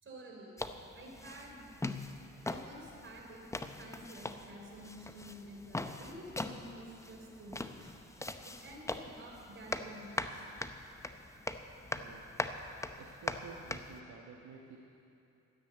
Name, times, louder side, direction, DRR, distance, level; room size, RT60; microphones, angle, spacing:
voice 1, 0.0-0.6 0.9-1.6 2.4-3.5 3.8-7.9 8.4-10.4, right 1 dB, 40° right, -1 dB, 4.1 m, -50 dB
sound 1, 0.6-14.0, left 2 dB, 10° left, 0.7 m, -42 dB
voice 2, 11.9-12.3 13.0-14.8, right 5 dB, 70° right, -1 dB, 1.4 m, -51 dB
14.0 x 9.6 x 8.2 m, 2.8 s
cardioid pair, 90°, 30 cm